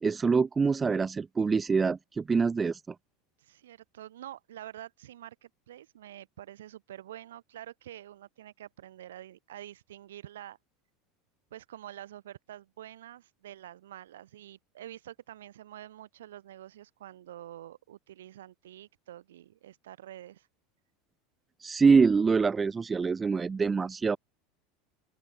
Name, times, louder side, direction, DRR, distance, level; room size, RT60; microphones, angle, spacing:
voice 1, 0.0-2.8 21.6-24.2, right 5 dB, 20° right, 0.8 m, -25 dB
voice 2, 3.4-10.6 11.5-20.5, right 12 dB, 85° right, 4.7 m, -47 dB
open air
hypercardioid pair, 95°, 0 cm